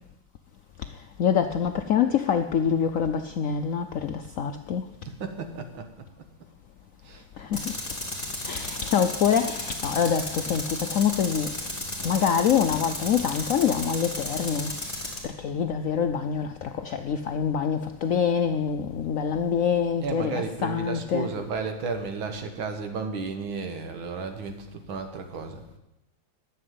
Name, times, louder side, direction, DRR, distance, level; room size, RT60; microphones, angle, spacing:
voice 1, 1.2-4.9 7.4-7.7 8.5-11.5 12.0-14.8 15.2-21.3, left 7 dB, 90° left, 0.7 m, -25 dB
voice 2, 5.1-5.9 7.0-7.2 8.4-8.6 20.0-25.6, right 4 dB, 80° right, 2.2 m, -33 dB
Tools, 7.5-15.2, left 1 dB, 15° left, 2.6 m, -34 dB
11.5 x 7.2 x 9.4 m
omnidirectional pair, 2.1 m